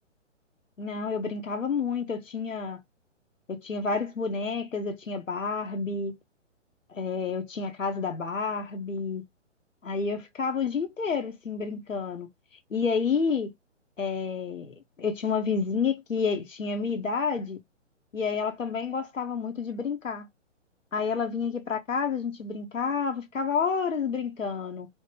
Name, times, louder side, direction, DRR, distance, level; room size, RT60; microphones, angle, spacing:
voice 1, 0.8-2.8 3.5-6.1 6.9-9.2 9.8-12.3 12.7-13.5 14.0-17.6 18.1-20.3 20.9-24.9, left 5 dB, 85° left, 0.7 m, -29 dB
3.2 x 2.0 x 3.1 m
figure-of-eight pair, 130°, 38 cm